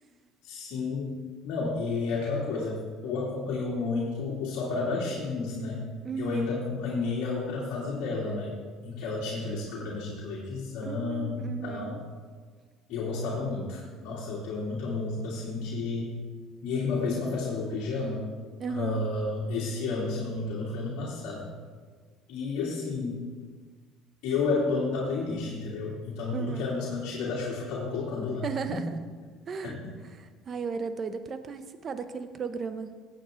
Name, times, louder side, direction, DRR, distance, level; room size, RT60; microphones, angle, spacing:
voice 1, 0.4-1.1 1.4-5.8 6.2-8.5 8.8-12.0 12.9-16.1 16.6-18.3 18.7-21.5 22.3-23.2 24.2-28.4 28.7-28.9 29.6-29.8, left 3 dB, 75° left, -5 dB, 2.5 m, -31 dB
voice 2, 6.0-6.5 10.8-12.0 18.6-19.0 26.3-26.7 28.4-29.0 29.5-29.8 30.1-32.9, right 5 dB, 35° right, 10 dB, 0.8 m, -35 dB
16.5 x 8.4 x 3.8 m, 1.6 s
cardioid pair, 120°, 0 cm